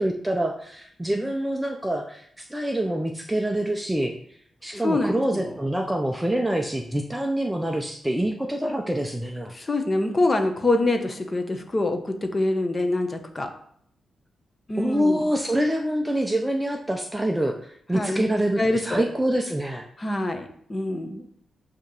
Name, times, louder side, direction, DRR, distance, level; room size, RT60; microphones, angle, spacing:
voice 1, 0.0-4.1 4.6-9.5 14.8-19.9, right 1 dB, 5° right, 3 dB, 0.5 m, -26 dB
voice 2, 4.8-5.5 9.5-13.5 14.7-15.2 17.9-18.3 18.6-19.1 20.0-21.3, left 2 dB, 20° left, 6 dB, 0.8 m, -25 dB
8.1 x 2.9 x 5.2 m, 0.66 s
wide cardioid pair, 160°, 0 cm